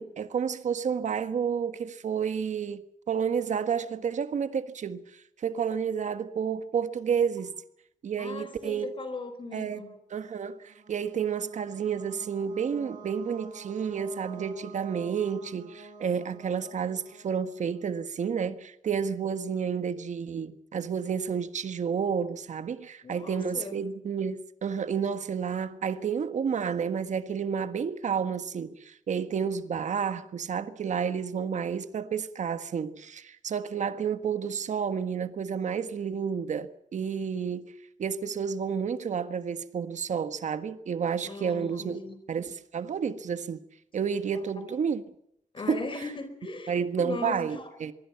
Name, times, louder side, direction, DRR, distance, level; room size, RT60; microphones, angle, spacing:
voice 1, 0.0-2.8 3.1-7.5 8.0-8.9 9.5-9.8 10.1-37.7 38.0-42.0 42.3-43.6 43.9-45.0 45.7-45.8 46.7-47.9, right 7 dB, 65° right, 1.5 m, -30 dB
voice 2, 8.2-9.9 23.0-23.8 41.2-42.2 44.3-44.7 45.5-47.7, left 3 dB, 40° left, 4.5 m, -38 dB
sound 1, 10.3-18.0, right 4 dB, 85° right, 6.8 m, -49 dB
24.0 x 23.5 x 5.9 m
wide cardioid pair, 145°, 13 cm